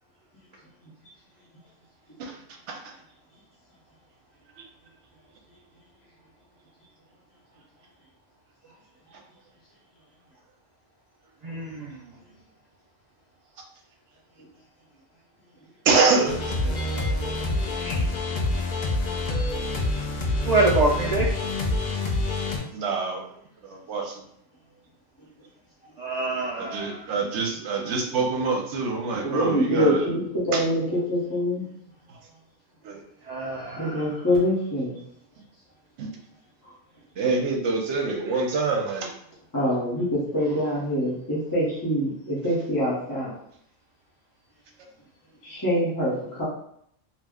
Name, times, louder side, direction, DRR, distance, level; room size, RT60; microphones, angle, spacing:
voice 1, 11.4-12.0 17.8-18.1 20.5-21.3 26.0-27.1 33.3-34.2, right 2 dB, 85° right, -3 dB, 0.3 m, -26 dB
voice 2, 15.8-16.8 22.7-23.2 23.6-24.2 26.6-30.1 30.5-30.6 32.1-32.2 32.8-33.0 36.0-36.1 37.2-39.1, right 4 dB, 70° right, 1 dB, 0.9 m, -25 dB
sound 1, 16.3-22.6, left 2 dB, 50° left, 0.5 m, -26 dB
voice 3, 29.1-30.8 31.1-31.6 33.8-35.0 39.5-43.3 45.4-46.4, equal, 20° left, -8 dB, 0.8 m, -25 dB
2.6 x 2.1 x 3.5 m, 0.70 s
omnidirectional pair, 1.3 m